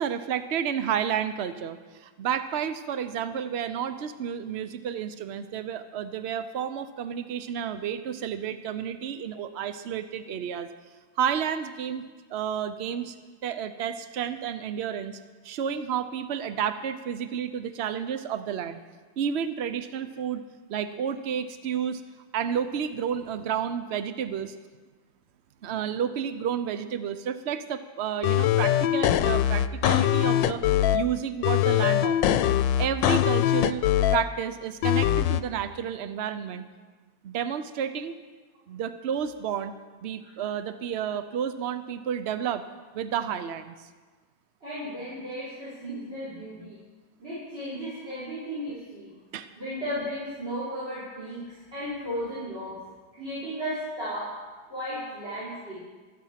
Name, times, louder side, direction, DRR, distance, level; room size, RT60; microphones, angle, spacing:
voice 1, 0.0-10.7 11.2-12.0 12.3-13.1 13.4-15.2 15.4-18.8 19.2-20.4 20.7-22.0 22.3-24.5 25.6-30.6 30.9-32.4 32.8-33.8 34.1-36.6 37.2-38.2 38.7-39.7 40.0-42.6 42.9-43.9 49.3-49.5, right 8 dB, 80° right, 11 dB, 0.5 m, -31 dB
sound 1, 28.2-31.0 31.4-34.2 34.8-35.4, left 11 dB, 90° left, 1.3 m, -22 dB
voice 2, 44.6-46.8 47.2-49.1 49.5-52.8 53.1-54.3 54.7-55.8, equal, 35° right, -10 dB, 5.9 m, -35 dB
24.0 x 8.7 x 5.8 m, 1.4 s
omnidirectional pair, 1.9 m